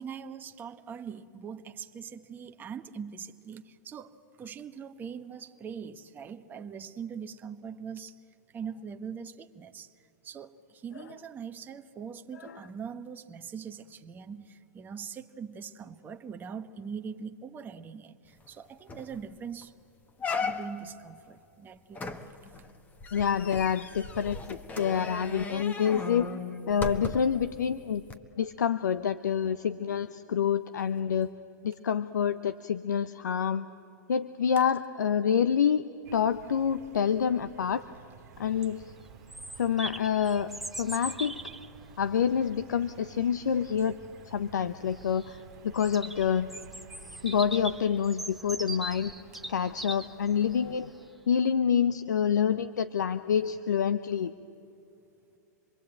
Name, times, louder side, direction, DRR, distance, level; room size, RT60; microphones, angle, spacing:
voice 1, 0.0-8.2 8.5-19.7 20.4-22.6 48.9-49.0, right 6 dB, 20° right, 6 dB, 1.1 m, -42 dB
sound 1, 18.5-18.6 18.9-19.2 19.6-19.7 20.2-20.9 22.0-27.4 28.1-28.2, left 4 dB, 20° left, 1.4 m, -37 dB
voice 2, 23.1-26.3 26.7-28.0 28.4-31.3 31.6-33.7 34.1-35.8 36.1-37.8 38.4-38.9 39.6-40.5 40.8-41.4 42.0-44.0 44.2-46.5 47.2-49.1 49.5-50.9 51.3-54.3, left 8 dB, 85° left, 12 dB, 0.7 m, -27 dB
sound 2, 36.0-47.9, right 8 dB, 60° right, 1.7 m, -52 dB
Bird vocalization bird call bird song, 38.3-51.1, right 1 dB, ahead, 1.2 m, -42 dB
26.5 x 22.0 x 8.8 m, 2.7 s
hypercardioid pair, 125°, 10 cm